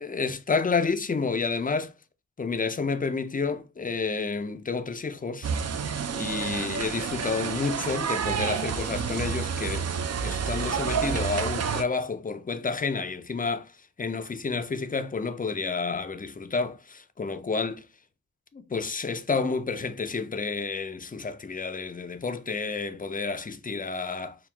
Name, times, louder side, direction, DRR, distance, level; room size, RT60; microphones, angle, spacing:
voice 1, 0.0-1.9 2.4-5.5 6.1-9.9 10.2-13.7 14.0-17.8 18.5-24.4, left 4 dB, 25° left, 0.4 m, -30 dB
sound 1, 5.4-11.8, right 6 dB, 45° right, 0.4 m, -29 dB
5.7 x 2.3 x 2.2 m
wide cardioid pair, 60°, 35 cm